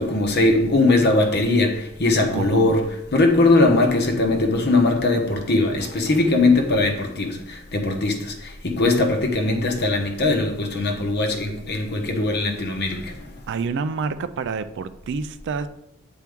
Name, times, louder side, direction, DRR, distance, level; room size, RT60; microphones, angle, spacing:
voice 1, 0.0-2.9 3.1-13.4, left 2 dB, 50° left, 1.0 m, -20 dB
voice 2, 2.3-2.8 13.5-15.7, right 5 dB, 55° right, 0.4 m, -28 dB
7.9 x 4.5 x 3.5 m
head